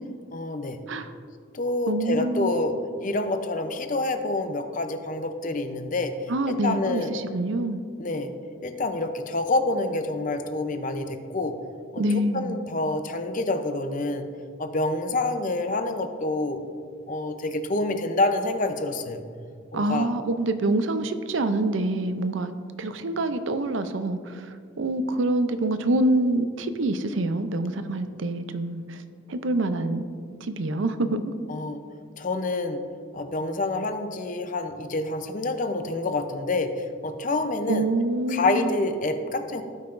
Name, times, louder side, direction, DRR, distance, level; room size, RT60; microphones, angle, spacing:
voice 1, 0.3-0.8 1.5-7.1 8.0-8.3 8.6-11.6 11.9-14.3 14.6-16.6 17.1-19.2 19.7-20.1 31.5-31.8 32.2-32.8 33.1-37.9 38.3-39.6, left 2 dB, 40° left, 7 dB, 0.6 m, -27 dB
voice 2, 1.9-2.5 6.3-7.8 12.0-12.6 19.7-22.5 22.8-29.0 29.3-30.1 30.4-31.3 37.7-38.7, right 2 dB, 70° right, 10 dB, 0.6 m, -26 dB
17.0 x 5.7 x 2.6 m, 2.1 s
head